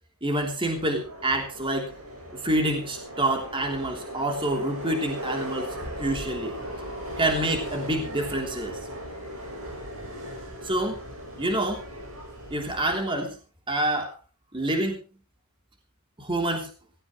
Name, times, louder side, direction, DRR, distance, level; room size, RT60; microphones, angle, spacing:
voice 1, 0.2-1.9 2.3-6.5 7.2-8.8 10.6-11.0 11.4-11.8 12.5-13.4 13.7-14.1 14.5-15.0 16.2-16.7, right 1 dB, 25° right, 3 dB, 3.3 m, -27 dB
Subway metro underground, 0.6-13.0, equal, 75° right, 7.1 m, -37 dB
17.5 x 17.5 x 3.2 m, 0.32 s
head